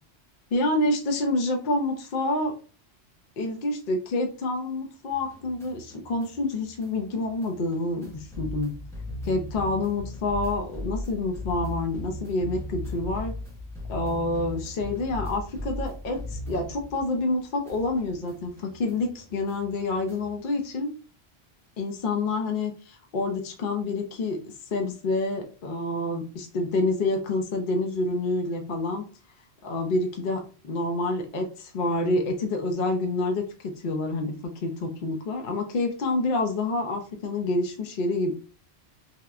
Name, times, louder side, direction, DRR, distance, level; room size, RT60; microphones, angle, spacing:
voice 1, 0.5-2.5 3.4-8.7 9.2-13.3 13.9-20.9 21.8-29.0 29.6-38.3, left 2 dB, 55° left, 3 dB, 0.6 m, -28 dB
sound 1, 5.1-17.4 17.7-20.4, left 1 dB, 5° left, 0.3 m, -38 dB
2.8 x 2.1 x 2.3 m, 0.37 s
omnidirectional pair, 1.1 m